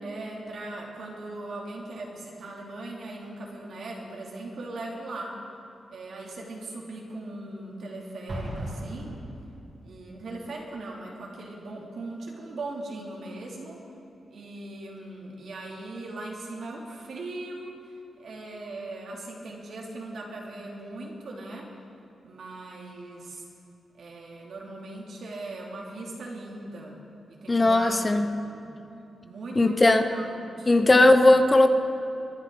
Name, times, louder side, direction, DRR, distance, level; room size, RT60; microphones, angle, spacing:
voice 1, 0.0-5.4 5.9-9.2 9.8-13.8 14.3-21.7 22.2-23.4 24.0-27.0 27.3-28.8 29.2-31.0, right 2 dB, 70° right, -2 dB, 2.8 m, -39 dB
Explosion, 8.3-9.9, equal, 55° right, 3.5 m, -36 dB
voice 2, 27.5-28.3 29.6-30.0 30.7-31.7, left 2 dB, 25° left, 8 dB, 0.9 m, -18 dB
24.0 x 11.0 x 4.0 m, 2.8 s
cardioid pair, 75°, 0 cm